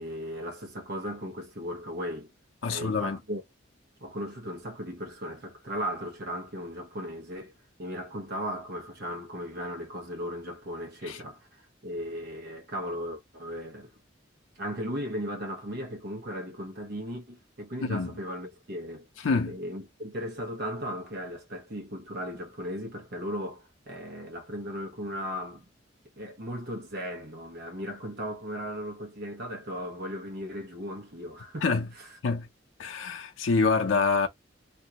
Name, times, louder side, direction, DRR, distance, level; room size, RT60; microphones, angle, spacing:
voice 1, 0.0-2.3 2.7-3.4 4.0-7.5 7.8-13.9 14.6-19.1 19.4-25.7 26.2-32.2, equal, 60° right, 1.0 m, -37 dB
voice 2, 2.6-3.2 11.1-11.2 17.9-18.1 19.2-19.5 31.6-31.8 32.2-32.5 32.8-34.3, left 4 dB, 85° left, 0.6 m, -26 dB
3.0 x 2.6 x 2.8 m
head